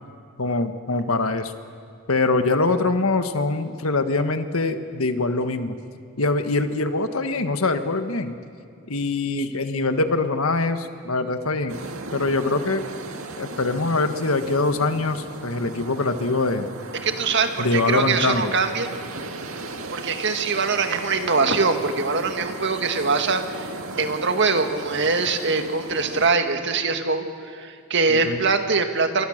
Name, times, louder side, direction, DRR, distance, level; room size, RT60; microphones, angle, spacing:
voice 1, 0.4-1.5 2.1-5.7 6.2-8.4 8.9-11.8 12.1-12.8 13.4-16.7 17.6-18.5 28.2-28.4, left 3 dB, 70° left, 8 dB, 1.5 m, -23 dB
sound 1, 11.7-26.3, right 3 dB, 70° right, 1.9 m, -36 dB
voice 2, 17.0-18.9 19.9-23.7 24.0-29.2, right 4 dB, 55° right, 6 dB, 1.9 m, -23 dB
28.5 x 24.5 x 6.6 m, 2.4 s
head